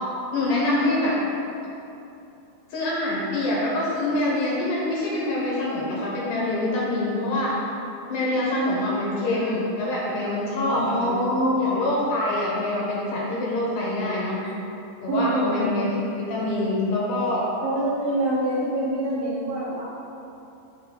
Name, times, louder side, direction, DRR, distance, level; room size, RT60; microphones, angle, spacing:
voice 1, 0.3-1.1 2.7-7.5 8.1-11.2 11.6-14.4 15.0-17.4, left 1 dB, 65° left, -5 dB, 2.2 m, -25 dB
voice 2, 10.7-11.8 14.4-14.5 15.1-15.7 17.6-19.8, equal, 60° right, -11 dB, 2.5 m, -25 dB
8.2 x 3.9 x 6.7 m, 2.8 s
omnidirectional pair, 5.3 m